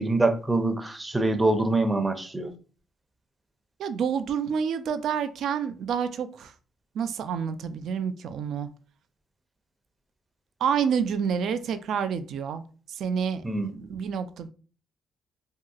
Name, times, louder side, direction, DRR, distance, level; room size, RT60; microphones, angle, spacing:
voice 1, 0.0-2.5 13.4-13.7, right 2 dB, 15° right, 0.5 m, -24 dB
voice 2, 3.8-6.5 6.9-8.7 10.6-12.6 12.9-13.4 13.7-14.5, right 7 dB, 70° right, 0.3 m, -28 dB
2.9 x 2.7 x 2.3 m
cardioid pair, 90°, 0 cm